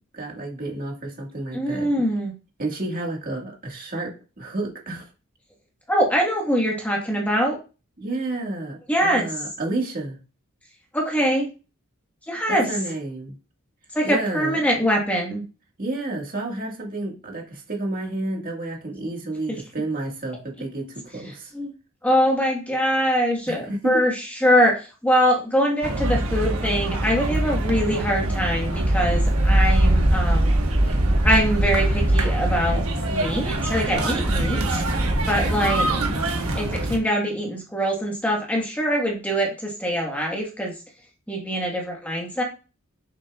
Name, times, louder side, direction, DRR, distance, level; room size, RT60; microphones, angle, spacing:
voice 1, 0.1-1.9 2.6-5.1 8.0-10.2 12.5-13.4 14.0-14.6 15.8-21.5 23.4-24.0, right 2 dB, 40° right, 0 dB, 1.7 m, -30 dB
voice 2, 1.5-2.3 5.9-7.5 8.9-9.3 10.9-11.5 12.3-12.7 13.9-15.4 21.5-21.7 22.0-30.5 31.2-34.8 35.3-35.9 36.5-40.7 41.3-42.4, equal, 5° left, 0 dB, 1.3 m, -23 dB
sound 1, 25.8-37.0, right 1 dB, 80° right, 1.3 m, -22 dB
7.2 x 6.7 x 2.3 m, 0.33 s
head